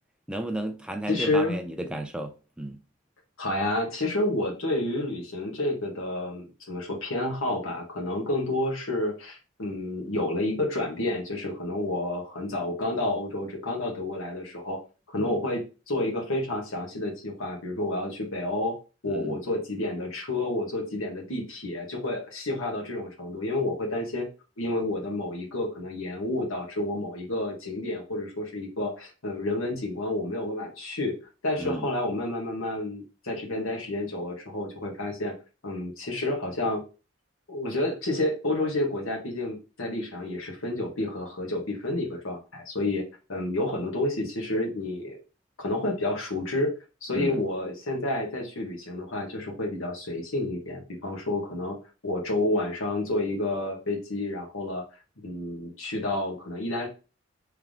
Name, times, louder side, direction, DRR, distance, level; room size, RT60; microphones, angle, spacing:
voice 1, 0.3-2.8 15.2-15.4 19.1-19.4 31.6-31.9 47.2-47.4, right 1 dB, 5° right, 0.3 m, -33 dB
voice 2, 1.1-1.6 3.4-14.8 15.1-18.8 19.0-24.3 24.6-31.2 31.4-35.3 35.6-36.8 37.5-43.0 43.3-45.2 45.6-46.7 47.0-51.8 52.0-54.8 55.2-56.9, left 2 dB, 75° left, 1.4 m, -30 dB
3.6 x 3.4 x 3.5 m
head